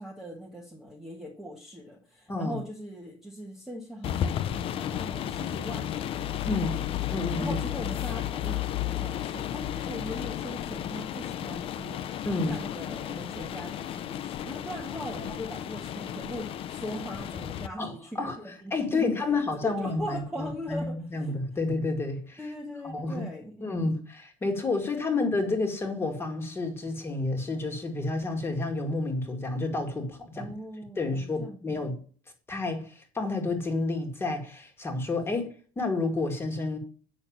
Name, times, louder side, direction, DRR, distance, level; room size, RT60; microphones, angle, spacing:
voice 1, 0.0-6.8 7.4-12.0 12.5-19.2 19.6-21.3 22.4-23.5 30.3-31.6 35.4-35.5, equal, ahead, 1.3 m, -40 dB
sound 1, 4.0-17.7, left 11 dB, 35° left, 0.5 m, -33 dB
voice 2, 6.5-6.8 7.1-7.6 12.3-12.6 15.2-15.3 17.8-18.4 18.7-22.5 22.8-23.3 23.6-30.6 31.0-32.0 32.5-35.5 35.8-36.8, left 3 dB, 15° left, 2.0 m, -30 dB
8.9 x 6.4 x 7.4 m
cardioid pair, 180°, 17 cm